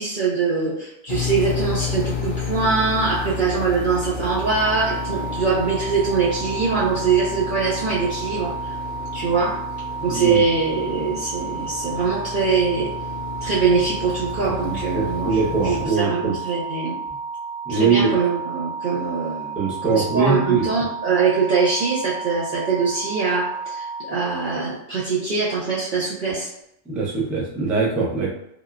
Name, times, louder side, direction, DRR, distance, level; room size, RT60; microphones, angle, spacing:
voice 1, 0.0-8.8 9.1-9.6 10.0-12.9 13.4-16.9 17.7-26.5, right 4 dB, 60° right, -7 dB, 0.5 m, -23 dB
sound 1, 1.1-15.9, left 6 dB, 80° left, 0.4 m, -32 dB
sound 2, 4.3-24.0, right 5 dB, 85° right, 1.2 m, -32 dB
voice 2, 10.0-10.4 14.7-16.3 17.7-18.1 19.6-20.6 26.9-28.3, right 4 dB, ahead, -6 dB, 0.3 m, -22 dB
3.5 x 2.3 x 2.3 m, 0.81 s
omnidirectional pair, 1.5 m